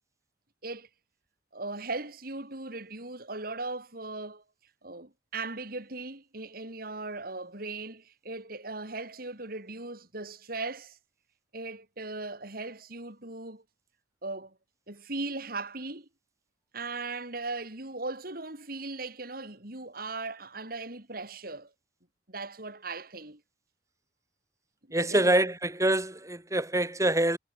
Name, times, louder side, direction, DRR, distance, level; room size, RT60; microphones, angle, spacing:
voice 1, 1.5-4.4 4.8-11.0 11.5-13.6 14.2-14.5 14.9-16.1 16.7-21.7 22.3-23.4 24.9-25.3, right 3 dB, 55° right, 5.7 m, -38 dB
voice 2, 24.9-27.4, right 1 dB, 20° right, 4.1 m, -25 dB
head